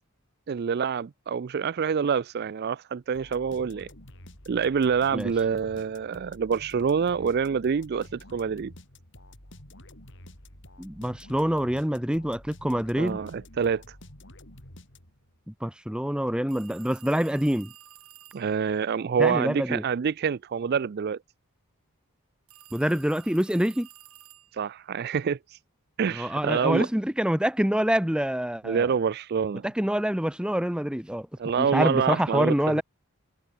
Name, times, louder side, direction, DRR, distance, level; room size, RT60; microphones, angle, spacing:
voice 1, 0.5-3.9 4.5-8.7 13.0-14.0 18.3-21.2 24.5-25.6 26.0-26.9 28.6-29.7 31.4-32.8, right 6 dB, 45° right, 0.4 m, -26 dB
sound 1, 3.1-15.4, left 1 dB, 55° left, 6.5 m, -49 dB
voice 2, 10.8-13.2 15.5-17.7 19.2-19.8 22.7-23.9 26.1-28.9 29.6-31.3 31.7-32.8, equal, 5° right, 0.8 m, -26 dB
sound 2, 16.5-18.6 22.5-24.7, right 13 dB, 75° right, 2.8 m, -51 dB
head